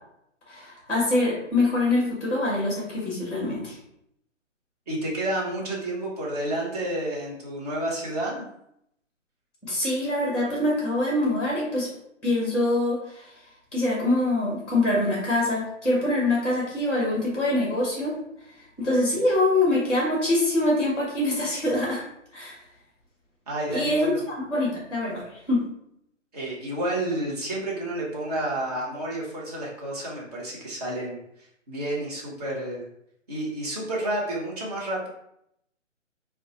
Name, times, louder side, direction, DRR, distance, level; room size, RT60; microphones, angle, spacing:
voice 1, 0.5-3.7 9.6-11.9 12.2-13.3 13.7-18.2 18.8-22.0 22.3-22.6 23.7-25.6, left 2 dB, ahead, -5 dB, 1.0 m, -24 dB
voice 2, 4.9-8.4 23.5-24.3 26.3-31.2 31.7-32.9 33.3-35.1, right 1 dB, 30° right, -4 dB, 0.9 m, -30 dB
2.6 x 2.2 x 3.9 m, 0.75 s
hypercardioid pair, 150°, 38 cm